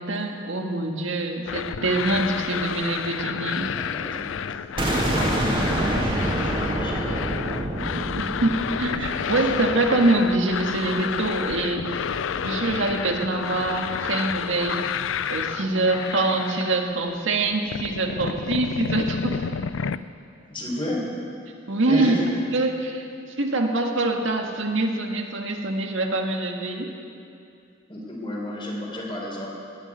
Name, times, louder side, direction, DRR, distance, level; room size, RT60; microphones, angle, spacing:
voice 1, 0.0-3.7 7.9-11.9 12.4-14.8 15.3-19.4 21.7-22.2 22.5-23.1 23.4-26.9, right 2 dB, 75° right, 2 dB, 1.7 m, -24 dB
sound 1, 1.5-17.2 17.4-20.0, left 7 dB, 75° left, 0.4 m, -30 dB
voice 2, 3.4-4.2 5.1-7.0 9.0-9.6 20.5-21.0 21.9-22.4 27.9-29.5, left 1 dB, 25° left, -2 dB, 3.8 m, -32 dB
sound 2, 4.8-10.6, right 1 dB, 25° right, 2.4 m, -27 dB
20.0 x 7.4 x 9.5 m, 2.6 s
head